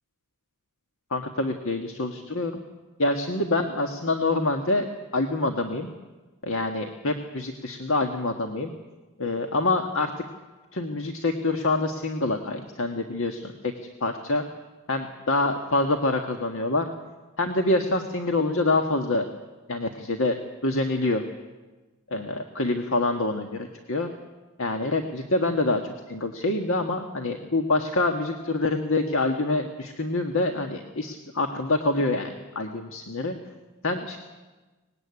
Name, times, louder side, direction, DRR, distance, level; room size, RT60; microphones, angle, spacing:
voice 1, 1.1-2.6 3.0-4.9 5.1-5.9 6.4-8.7 9.2-10.1 10.7-13.7 14.0-14.4 14.9-16.9 17.4-19.2 19.7-20.4 20.6-21.2 22.1-24.1 24.6-33.3 33.8-34.2, left 2 dB, 65° left, 5 dB, 1.6 m, -26 dB
24.0 x 20.0 x 9.7 m, 1.2 s
head